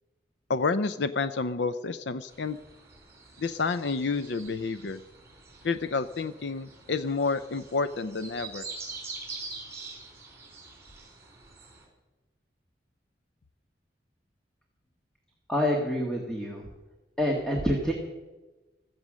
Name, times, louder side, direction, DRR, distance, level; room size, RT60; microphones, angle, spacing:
voice 1, 0.5-2.6 3.4-5.0 5.6-8.7, left 4 dB, 75° left, 12 dB, 0.6 m, -29 dB
sound 1, 2.3-11.9, right 4 dB, 15° right, 4.5 m, -45 dB
voice 2, 15.5-16.7 17.2-17.9, equal, 5° left, -1 dB, 1.8 m, -27 dB
15.5 x 14.5 x 6.3 m, 1.1 s
head